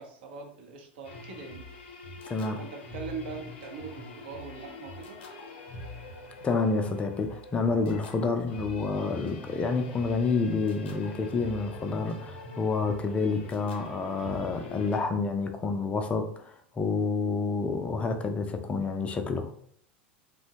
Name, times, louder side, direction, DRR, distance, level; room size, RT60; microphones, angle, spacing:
voice 1, 0.0-1.7 2.6-5.2, right 5 dB, 60° right, 0.6 m, -41 dB
sound 1, 1.0-15.0, left 2 dB, 60° left, 0.7 m, -44 dB
voice 2, 2.2-2.6 6.4-19.5, left 4 dB, 20° left, 0.4 m, -29 dB
2.7 x 2.1 x 2.8 m
figure-of-eight pair, 85°, 6 cm